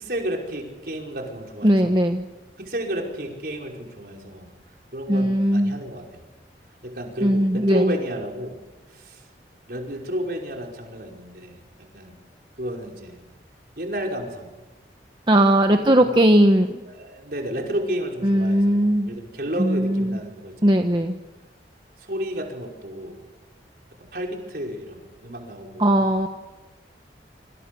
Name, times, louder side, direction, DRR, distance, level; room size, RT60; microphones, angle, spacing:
voice 1, 0.0-2.0 2.6-6.2 6.8-8.6 8.9-9.3 9.7-11.6 11.9-12.2 12.6-13.2 13.8-14.5 15.7-16.1 16.8-20.7 22.0-23.2 24.1-26.1, equal, 55° right, 0 dB, 5.5 m, -32 dB
voice 2, 1.6-2.2 5.1-5.8 7.2-7.9 15.3-16.8 18.2-19.1 19.6-20.2 20.6-21.2 25.8-26.3, right 1 dB, 25° right, 5 dB, 1.1 m, -19 dB
27.0 x 26.0 x 7.0 m, 1.1 s
head